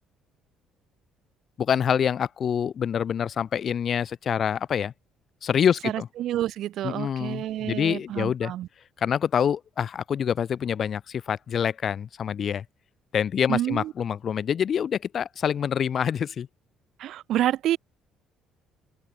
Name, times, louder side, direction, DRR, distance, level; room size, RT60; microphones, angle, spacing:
voice 1, 1.6-4.9 5.4-6.1 6.8-8.5 9.0-12.6 13.1-16.5, left 8 dB, 40° left, 1.4 m, -26 dB
voice 2, 5.8-8.7 13.5-13.9 17.0-17.8, right 12 dB, 65° right, 0.6 m, -28 dB
open air
cardioid pair, 135°, 0 cm